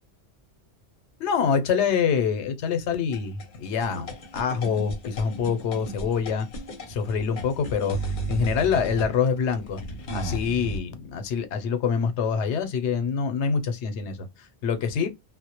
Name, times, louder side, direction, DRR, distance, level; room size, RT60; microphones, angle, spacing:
voice 1, 1.2-6.5 6.9-9.8 10.1-15.1, left 6 dB, 90° left, 0.9 m, -26 dB
sound 1, 3.1-10.8, right 2 dB, 55° left, 0.8 m, -35 dB
2.1 x 2.1 x 2.8 m
omnidirectional pair, 1.1 m